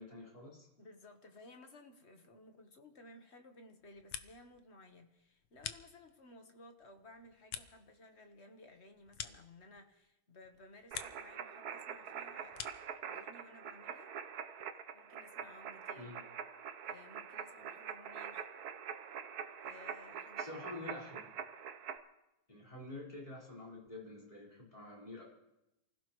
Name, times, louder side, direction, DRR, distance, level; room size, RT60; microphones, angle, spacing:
voice 1, 0.0-0.7 16.0-16.2 20.4-21.3 22.5-25.3, left 2 dB, 20° left, -5 dB, 4.8 m, -48 dB
voice 2, 0.8-12.7 13.0-14.1 14.9-16.1 16.8-18.5 19.6-20.5, left 2 dB, 35° left, 5 dB, 1.3 m, -58 dB
sound 1, 3.8-4.6 4.9-6.4 6.8-10.1 10.4-11.4 11.7-13.0, left 10 dB, 80° left, 1.7 m, -48 dB
sound 2, 10.9-22.0, right 8 dB, 60° right, 1.1 m, -45 dB
28.5 x 16.0 x 3.1 m, 0.92 s
omnidirectional pair, 2.3 m